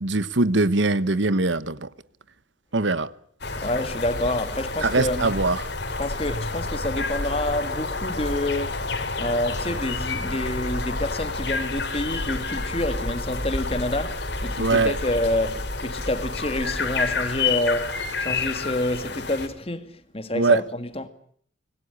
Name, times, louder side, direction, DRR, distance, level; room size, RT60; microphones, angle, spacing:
voice 1, 0.0-1.8 2.7-3.1 4.8-5.6 14.6-14.9 20.3-20.6, right 3 dB, 65° right, 1.2 m, -21 dB
sound 1, 3.4-19.5, left 3 dB, 55° left, 3.6 m, -29 dB
voice 2, 3.6-5.4 6.0-8.8 9.2-21.1, left 1 dB, 30° left, 2.1 m, -28 dB
26.0 x 20.0 x 10.0 m
head